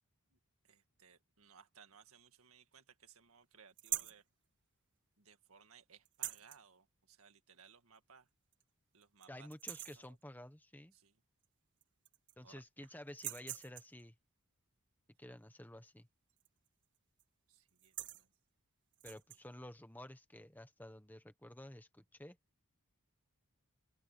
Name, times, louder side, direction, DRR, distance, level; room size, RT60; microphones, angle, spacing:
voice 1, 0.6-4.2 5.2-8.3 8.9-9.5 10.0-10.2 10.9-11.1 12.4-12.9 17.5-18.3, right 6 dB, 70° right, 1.9 m, -63 dB
sound 1, 3.8-4.2 6.1-6.6 8.0-8.1 8.5-8.6 9.0-9.3 9.5-10.1 11.4-11.5 11.8-12.5 13.1-14.0 16.4-16.7 17.0-17.2 17.7-18.3 18.9-19.4, right 13 dB, 55° right, 1.6 m, -44 dB
voice 2, 9.3-10.9 12.4-14.1 15.2-16.1 19.0-22.4, left 1 dB, 10° left, 1.3 m, -52 dB
open air
head